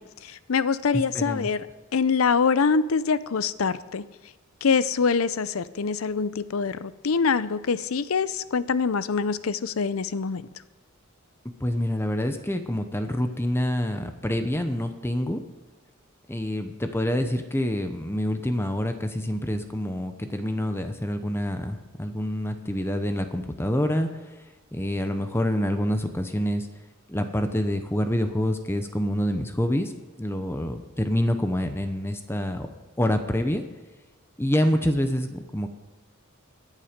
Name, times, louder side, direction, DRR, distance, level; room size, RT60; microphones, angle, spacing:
voice 1, 0.2-1.7 1.9-4.0 4.6-10.4, left 5 dB, 80° left, 16 dB, 0.6 m, -24 dB
voice 2, 1.1-1.5 11.6-15.4 16.3-24.4 24.7-26.7 27.1-29.9 30.2-32.7 33.0-33.6 34.4-35.7, left 1 dB, 10° left, 7 dB, 0.8 m, -27 dB
21.5 x 7.4 x 5.2 m, 1.2 s
head